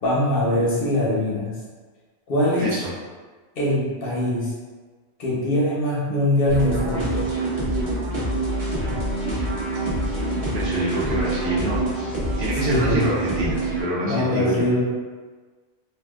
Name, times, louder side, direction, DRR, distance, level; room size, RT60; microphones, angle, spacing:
voice 1, 0.0-1.5 2.3-2.8 3.6-4.5 5.2-7.3 12.7-13.1 14.0-14.8, left 1 dB, 55° left, -5 dB, 0.8 m, -22 dB
voice 2, 2.6-2.9 10.5-11.8 12.4-14.7, right 1 dB, 55° right, -6 dB, 0.9 m, -26 dB
sound 1, 6.5-13.8, right 1 dB, 35° right, 0.5 m, -25 dB
2.6 x 2.2 x 2.3 m, 1.4 s
omnidirectional pair, 1.3 m